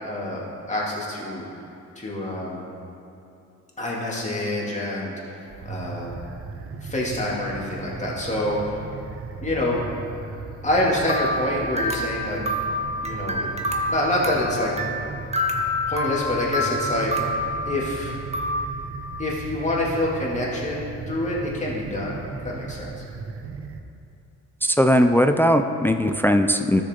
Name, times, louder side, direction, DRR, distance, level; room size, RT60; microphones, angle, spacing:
voice 1, 0.0-1.5 2.0-2.6 3.8-6.1 6.8-8.9 9.4-9.8 10.6-12.4 13.0-13.5 13.9-14.7 15.9-17.1 17.7-18.2 19.2-22.2 22.4-22.9, left 1 dB, 25° left, -4 dB, 2.5 m, -26 dB
sound 1, 5.4-23.8, right 4 dB, 45° right, 0.8 m, -37 dB
sound 2, 11.1-18.7, left 1 dB, 20° right, 1.1 m, -28 dB
voice 2, 24.6-26.8, equal, 5° left, 7 dB, 0.4 m, -19 dB
13.5 x 6.8 x 3.8 m, 2.7 s
cardioid pair, 90°, 30 cm